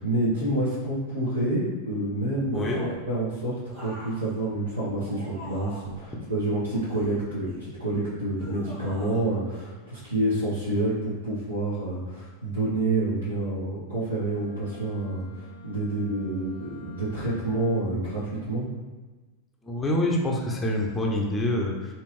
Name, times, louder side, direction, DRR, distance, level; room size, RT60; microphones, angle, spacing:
voice 1, 0.0-18.7, right 2 dB, 80° right, -10 dB, 1.1 m, -28 dB
voice 2, 2.5-2.9 6.1-6.3 19.6-21.9, left 1 dB, 15° left, -1 dB, 0.6 m, -26 dB
sound 1, 2.5-3.0 3.7-6.0 6.7-7.8 8.4-9.2 9.5-9.7, equal, 25° right, 1.3 m, -44 dB
Bowed string instrument, 14.1-18.2, left 5 dB, 55° left, 0.5 m, -48 dB
4.2 x 2.6 x 3.0 m, 1.2 s
figure-of-eight pair, 90°, 0 cm